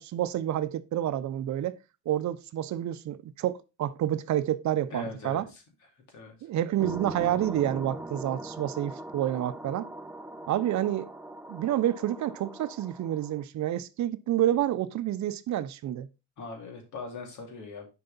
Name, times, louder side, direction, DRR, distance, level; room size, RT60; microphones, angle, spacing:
voice 1, 0.0-1.8 2.1-5.4 6.4-9.9 10.5-11.1 11.5-16.1, right 12 dB, 65° right, 0.6 m, -29 dB
voice 2, 4.9-5.6 6.1-6.5 16.4-17.9, left 4 dB, 75° left, 2.5 m, -41 dB
sound 1, 6.8-13.4, right 1 dB, 5° right, 0.7 m, -41 dB
6.7 x 4.7 x 3.9 m
cardioid pair, 90°, 30 cm